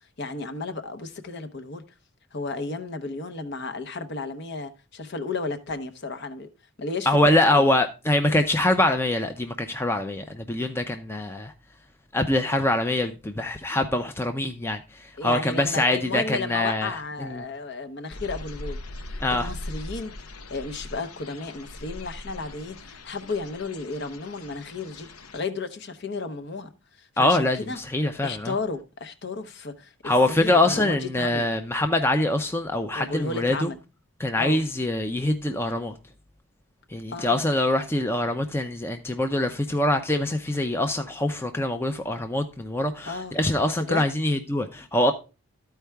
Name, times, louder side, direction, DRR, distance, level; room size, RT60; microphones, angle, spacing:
voice 1, 0.2-1.8 2.3-6.5 6.8-7.7 15.2-20.1 20.5-25.1 25.3-26.7 27.0-27.8 28.2-31.5 32.9-33.8 34.4-34.6 37.1-37.5 43.1-43.4 43.9-44.0, left 3 dB, 50° left, 0.8 m, -33 dB
voice 2, 7.1-11.5 12.1-17.4 19.2-19.5 27.2-28.5 30.0-33.7 34.2-35.9 36.9-45.1, left 1 dB, 10° left, 0.5 m, -24 dB
sound 1, 18.1-25.4, left 1 dB, 85° left, 0.8 m, -40 dB
13.0 x 4.6 x 3.3 m
head